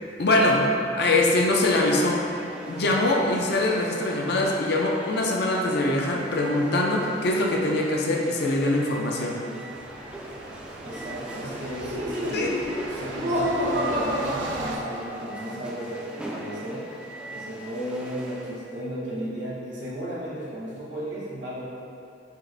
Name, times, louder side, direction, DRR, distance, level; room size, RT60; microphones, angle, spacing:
voice 1, 0.2-0.6 0.9-2.2 2.7-9.4 12.3-12.5, left 2 dB, 60° left, -1 dB, 0.5 m, -23 dB
sound 1, 1.6-18.5, right 1 dB, 5° right, 0.3 m, -41 dB
sound 2, 9.7-14.8, right 3 dB, 85° right, 0.3 m, -40 dB
voice 2, 10.8-12.6 12.9-16.9 17.3-21.6, equal, 70° right, -7 dB, 1.2 m, -34 dB
Laughter, 11.8-15.5, equal, 45° right, 0.6 m, -29 dB
4.7 x 2.5 x 3.2 m, 2.5 s
head